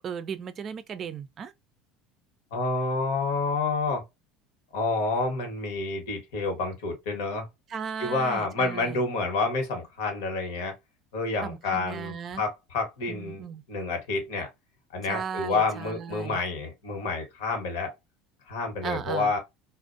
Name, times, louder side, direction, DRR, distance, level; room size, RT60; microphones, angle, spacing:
voice 1, 0.0-1.5 7.7-9.0 11.4-12.4 13.1-13.6 15.1-16.4 18.8-19.3, right 7 dB, 40° right, 0.4 m, -36 dB
voice 2, 2.5-4.0 4.7-7.5 8.0-10.8 11.1-14.5 14.9-17.9 18.5-19.4, left 3 dB, 80° left, 1.0 m, -29 dB
2.5 x 2.1 x 2.4 m
supercardioid pair, 100°, 0 cm